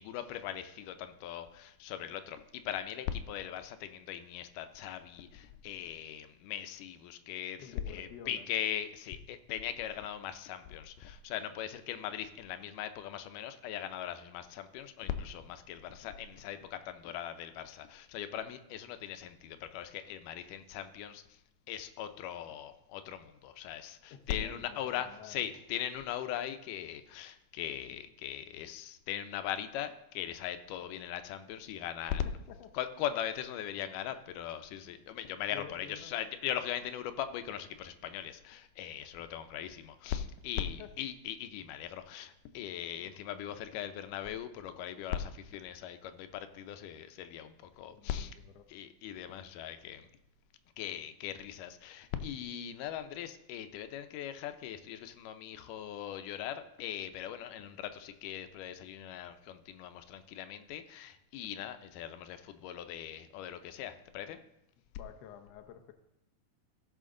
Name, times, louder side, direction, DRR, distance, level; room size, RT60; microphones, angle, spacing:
voice 1, 0.0-21.4 21.7-32.3 32.7-48.4 48.7-50.1 50.8-64.4, left 10 dB, 90° left, 10 dB, 2.3 m, -40 dB
voice 2, 7.6-8.4 24.1-25.5 32.3-32.4 32.6-32.7 35.5-36.1 40.6-40.9 47.9-48.7 65.0-65.9, left 9 dB, 70° left, 5 dB, 1.6 m, -50 dB
16.0 x 5.8 x 3.7 m, 0.82 s
omnidirectional pair, 3.6 m